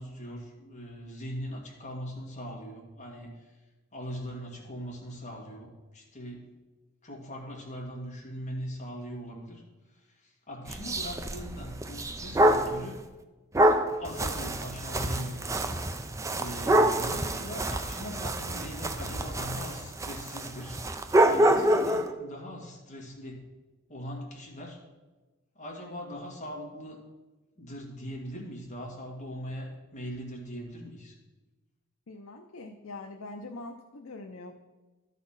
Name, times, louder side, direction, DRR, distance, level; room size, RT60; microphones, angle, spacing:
voice 1, 0.0-3.6 3.9-6.5 7.0-9.6 9.9-13.0 14.0-15.8 16.4-23.5 23.9-24.8 25.6-27.0 27.6-31.1, equal, 35° left, -2 dB, 1.9 m, -40 dB
sound 1, 10.7-12.8 13.5-22.1, right 1 dB, 15° right, 0.4 m, -26 dB
voice 2, 32.1-34.5, left 2 dB, 70° left, 3 dB, 0.6 m, -43 dB
12.5 x 4.2 x 5.6 m, 1.2 s
head